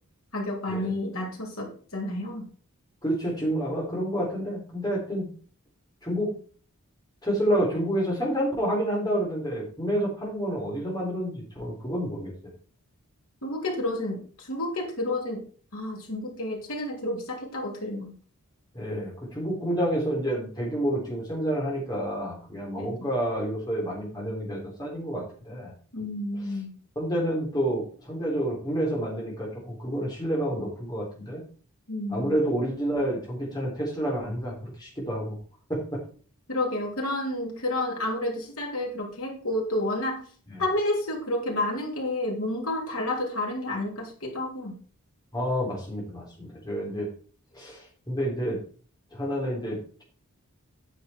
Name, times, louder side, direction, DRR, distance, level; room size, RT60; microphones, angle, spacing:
voice 1, 0.3-2.5 13.4-15.5 15.7-18.1 22.8-23.1 25.9-26.7 31.9-32.4 36.5-40.2 40.6-44.7, left 1 dB, 70° left, 0 dB, 3.1 m, -30 dB
voice 2, 3.0-5.3 6.0-6.3 7.2-12.3 18.7-25.7 27.0-31.4 32.1-35.4 35.7-36.0 40.5-40.6 45.3-47.1 47.5-48.6 49.1-50.0, equal, 20° left, -3 dB, 3.7 m, -29 dB
9.3 x 6.6 x 4.5 m, 0.42 s
head